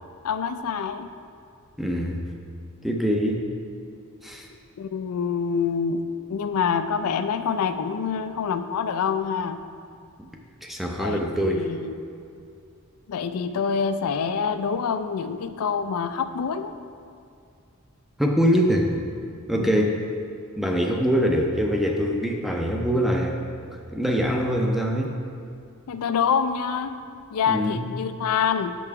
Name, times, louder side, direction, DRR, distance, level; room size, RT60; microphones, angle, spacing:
voice 1, 0.2-1.1 4.8-6.0 6.3-9.6 11.0-11.2 11.5-12.0 13.1-16.7 19.5-19.8 25.9-26.9 27.3-28.8, left 6 dB, 75° left, 10 dB, 0.4 m, -26 dB
voice 2, 1.8-2.2 2.8-3.4 4.2-4.5 10.2-10.3 10.6-11.7 18.2-18.9 19.5-20.1 20.6-23.4 23.7-25.1 27.5-27.9, equal, ahead, 1 dB, 0.4 m, -23 dB
6.7 x 5.4 x 4.7 m, 2.4 s
head